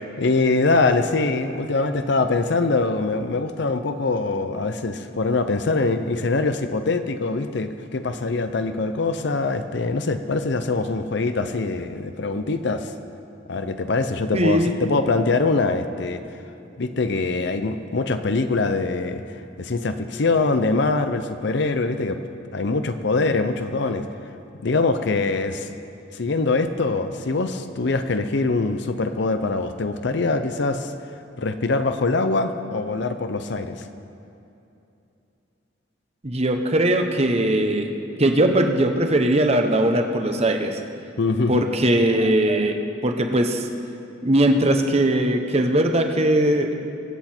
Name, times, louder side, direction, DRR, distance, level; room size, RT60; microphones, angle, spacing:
voice 1, 0.2-12.9 13.5-16.2 16.8-22.2 22.5-24.1 24.6-25.7 26.1-30.9 31.4-33.8 41.2-41.7, left 3 dB, 65° left, 9 dB, 0.6 m, -23 dB
voice 2, 14.3-14.7 36.2-37.9 38.2-40.8 41.5-42.8 43.0-43.7 44.2-46.7, right 1 dB, 35° right, 5 dB, 1.0 m, -20 dB
24.0 x 8.2 x 4.4 m, 2.8 s
head